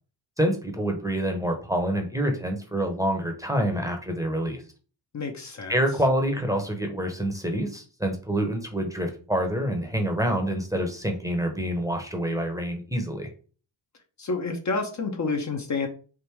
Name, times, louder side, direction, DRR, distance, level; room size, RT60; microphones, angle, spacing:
voice 1, 0.4-4.6 5.7-13.3, right 1 dB, 5° right, 3 dB, 0.8 m, -27 dB
voice 2, 5.1-5.8 14.2-15.9, left 3 dB, 40° left, 3 dB, 0.8 m, -29 dB
3.5 x 2.5 x 4.5 m, 0.38 s
cardioid pair, 100°, 45 cm